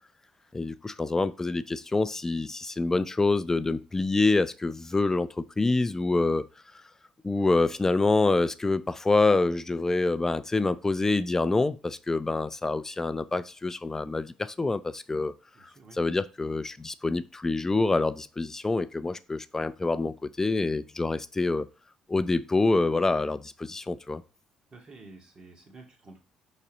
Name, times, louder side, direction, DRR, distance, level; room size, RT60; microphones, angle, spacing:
voice 1, 0.5-6.4 7.2-15.3 16.0-21.7 22.1-24.2, left 3 dB, 20° left, 0.5 m, -26 dB
voice 2, 15.5-16.0 24.7-26.2, right 3 dB, 40° right, 2.5 m, -50 dB
5.4 x 4.3 x 5.4 m
supercardioid pair, 75°, 2 cm